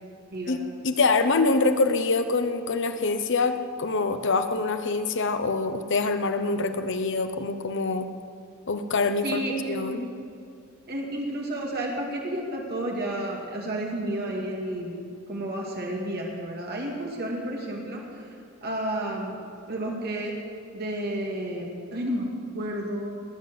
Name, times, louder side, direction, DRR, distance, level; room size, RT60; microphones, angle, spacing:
voice 1, 0.8-8.1 8.7-10.1, left 3 dB, 60° left, 8 dB, 0.9 m, -25 dB
voice 2, 9.2-10.0 10.9-18.3 18.6-19.4 19.7-20.3 20.7-22.3 22.5-23.1, right 1 dB, 50° right, -1 dB, 2.1 m, -31 dB
20.0 x 7.5 x 7.7 m, 2.4 s
head